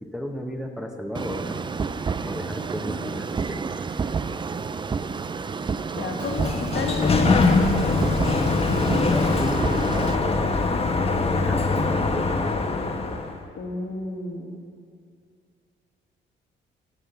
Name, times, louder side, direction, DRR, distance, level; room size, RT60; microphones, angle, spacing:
voice 1, 0.0-1.6 2.2-3.8 8.3-8.5 8.7-10.7 11.2-12.7, equal, 5° right, 2 dB, 1.2 m, -34 dB
sound 1, 1.1-10.1, right 5 dB, 25° right, 0.4 m, -30 dB
voice 2, 5.9-8.0 13.6-14.6, left 4 dB, 70° left, 1 dB, 2.1 m, -31 dB
Sliding door, 6.0-13.4, left 3 dB, 30° left, 1.2 m, -23 dB
17.0 x 5.7 x 6.9 m, 2.2 s
cardioid pair, 90°, 20 cm